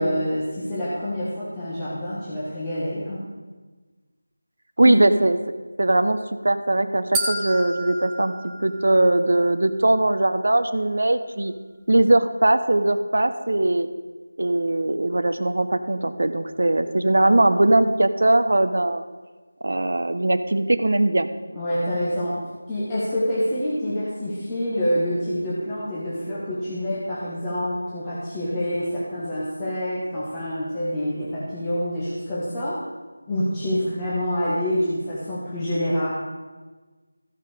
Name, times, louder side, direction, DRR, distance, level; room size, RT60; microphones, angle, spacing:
voice 1, 0.0-3.2 4.8-5.0 21.5-32.8 33.3-36.1, equal, 10° left, -10 dB, 1.3 m, -26 dB
voice 2, 4.8-5.4 5.8-6.2 6.4-8.3 8.6-11.5 11.9-13.9 14.4-19.0 19.6-21.3, right 2 dB, 65° right, 10 dB, 0.7 m, -20 dB
sound 1, 7.1-9.4, right 2 dB, 10° right, 0.6 m, -31 dB
14.0 x 5.7 x 4.9 m, 1.3 s
figure-of-eight pair, 170°, 0 cm